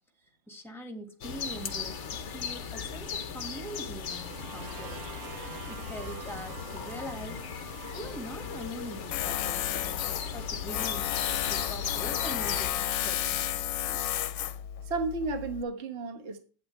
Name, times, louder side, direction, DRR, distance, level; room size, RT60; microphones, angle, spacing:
voice 1, 0.5-5.0 5.7-7.4 7.9-13.6 13.9-14.0, equal, ahead, 4 dB, 1.5 m, -43 dB
sound 1, 1.2-12.7, left 6 dB, 50° left, 0.9 m, -38 dB
sound 2, 3.8-9.6, right 11 dB, 75° right, 1.4 m, -48 dB
Tools, 9.1-15.6, left 11 dB, 75° left, 1.3 m, -32 dB
voice 2, 14.9-16.4, right 3 dB, 40° right, 6 dB, 1.4 m, -33 dB
11.5 x 8.8 x 3.2 m, 0.39 s
omnidirectional pair, 2.1 m